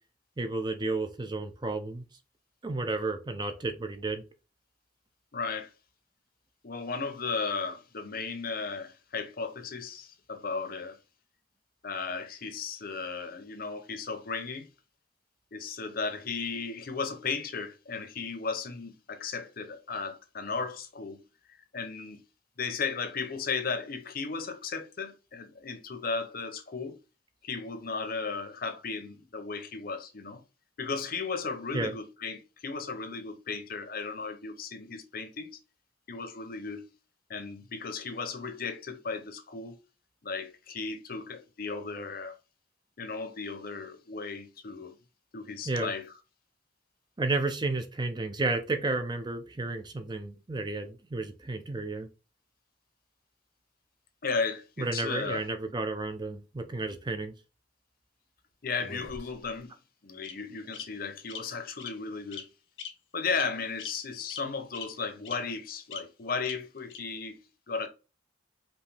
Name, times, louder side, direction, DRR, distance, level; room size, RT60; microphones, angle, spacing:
voice 1, 0.4-2.1 2.6-4.2 31.7-31.9 45.7-45.9 47.2-52.1 54.8-57.3, right 3 dB, 20° right, 0.5 m, -32 dB
voice 2, 5.3-5.7 6.6-11.0 11.8-14.7 15.5-21.2 21.7-22.2 22.6-27.0 27.4-30.4 30.8-35.6 36.1-36.9 37.3-39.8 40.2-42.3 43.0-44.9 45.3-46.1 54.2-55.4 58.6-59.7 60.0-62.5 63.1-67.4 67.7-67.9, left 4 dB, 50° left, 0.8 m, -35 dB
Bird vocalization bird call bird song, 58.8-59.6 60.2-60.3 60.7-60.8 61.3-61.4 61.8-61.9 62.3-62.4 62.8-62.9 63.3-63.5 63.8-63.9 64.3-64.4 64.7-64.8 65.2-65.3 65.9-66.0 66.4-66.5 66.9-67.0, left 6 dB, 75° left, 1.0 m, -40 dB
5.2 x 2.8 x 3.3 m
head